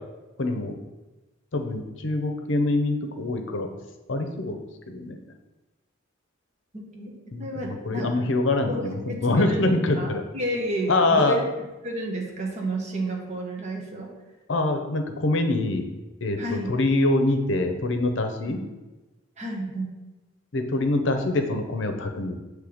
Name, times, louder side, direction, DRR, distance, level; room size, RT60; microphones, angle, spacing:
voice 1, 0.4-0.7 1.5-3.7 4.1-4.6 4.9-5.2 7.3-10.2 10.9-11.4 14.5-15.8 16.2-18.6 20.5-22.4, left 2 dB, 65° left, 5 dB, 0.7 m, -24 dB
voice 2, 6.7-7.1 7.4-8.3 8.7-8.8 9.1-11.4 11.8-14.1 16.4-16.8 18.5-18.6 19.4-19.9, right 1 dB, 35° right, -1 dB, 1.2 m, -31 dB
7.7 x 3.3 x 5.0 m, 1.1 s
head